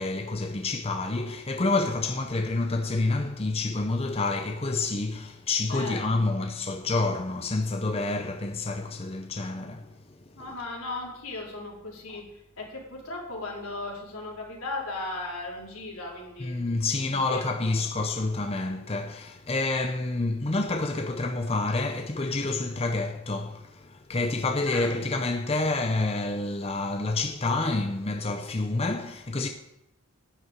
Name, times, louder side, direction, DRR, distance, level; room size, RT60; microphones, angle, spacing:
voice 1, 0.0-9.9 16.4-29.5, left 3 dB, 30° left, 0.6 m, -28 dB
voice 2, 5.7-6.4 10.4-12.2 12.6-16.6 17.1-17.7 24.6-24.9, left 2 dB, 85° left, 4.5 m, -37 dB
11.0 x 6.8 x 8.9 m
head